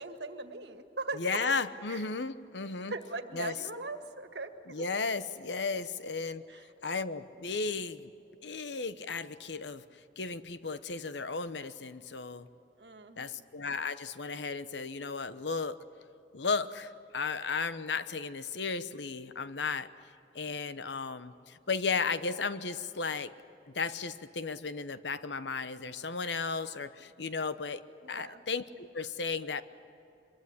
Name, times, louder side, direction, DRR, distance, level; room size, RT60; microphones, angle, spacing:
voice 1, 0.0-1.5 1.9-2.0 2.8-4.9 6.5-6.6 12.8-13.4 28.0-28.4, right 3 dB, 70° right, 8 dB, 1.9 m, -40 dB
voice 2, 1.2-2.9 3.3-3.6 4.7-6.4 6.8-8.1 8.4-9.8 10.2-12.5 13.2-15.8 16.3-19.9 20.3-23.3 23.7-27.8 28.1-29.6, left 4 dB, 80° left, 13 dB, 1.0 m, -34 dB
25.0 x 22.5 x 9.8 m, 2.9 s
head